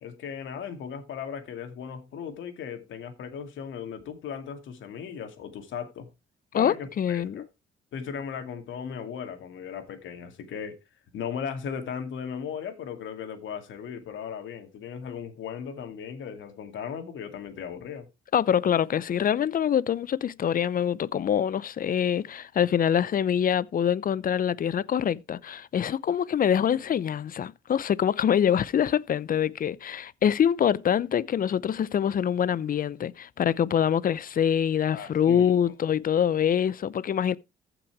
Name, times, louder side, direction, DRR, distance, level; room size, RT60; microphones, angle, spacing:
voice 1, 0.0-6.1 6.5-7.4 7.9-10.8 11.1-18.1 34.9-35.5, left 7 dB, 75° left, 2.4 m, -37 dB
voice 2, 6.6-7.4 18.3-37.4, left 9 dB, 45° left, 0.6 m, -25 dB
14.5 x 6.1 x 4.7 m
cardioid pair, 90°, 20 cm